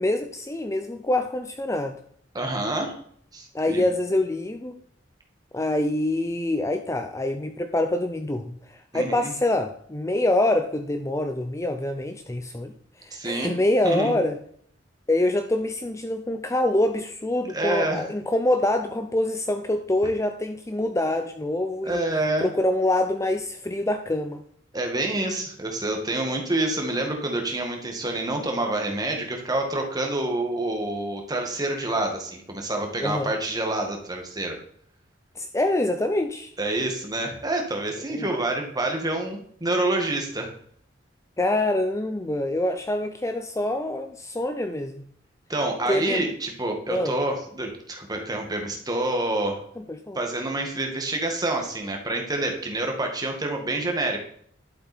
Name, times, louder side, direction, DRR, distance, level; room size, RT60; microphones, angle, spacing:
voice 1, 0.0-2.0 3.5-4.8 5.5-12.7 13.0-14.4 15.1-22.0 22.4-24.4 33.0-33.3 35.4-36.5 38.1-38.3 41.4-45.0 45.9-46.3 46.9-47.2 49.8-50.2, left 1 dB, 15° left, 7 dB, 0.6 m, -25 dB
voice 2, 2.3-2.9 3.3-3.8 8.9-9.3 13.1-13.6 13.8-14.2 17.5-18.1 21.8-22.5 24.7-34.6 36.6-40.5 45.5-49.6 50.2-54.2, right 2 dB, 20° right, 3 dB, 2.0 m, -27 dB
11.5 x 7.7 x 4.4 m, 0.63 s
head